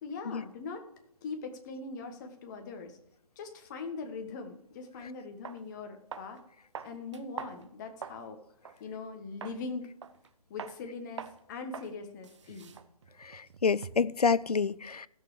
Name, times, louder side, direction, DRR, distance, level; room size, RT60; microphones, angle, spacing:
voice 1, 0.0-0.8 1.2-3.0 3.4-6.4 6.8-8.4 8.8-9.9 10.5-12.7, left 4 dB, 30° left, 1.5 m, -41 dB
sound 1, 4.9-5.0 5.4-5.6 6.1-6.4 6.7-8.3 8.6-8.8 9.4-9.6 10.0-10.3 10.6-10.8 11.2-11.4 11.7-11.9 12.2-14.2, right 7 dB, 50° right, 0.8 m, -44 dB
voice 2, 13.3-15.1, left 5 dB, 85° left, 0.5 m, -28 dB
15.0 x 6.7 x 5.0 m
figure-of-eight pair, 135°, 19 cm